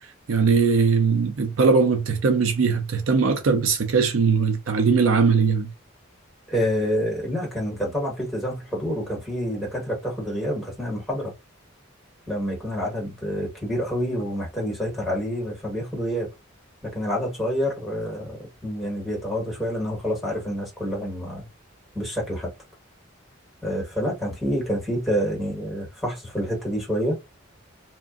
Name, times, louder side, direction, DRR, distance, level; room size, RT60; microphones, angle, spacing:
voice 1, 0.3-5.7, right 5 dB, 80° right, 0.5 m, -20 dB
voice 2, 6.5-11.3 12.3-16.3 16.8-21.5 21.9-22.5 23.6-27.2, equal, ahead, 1.3 m, -27 dB
2.8 x 2.5 x 2.4 m
head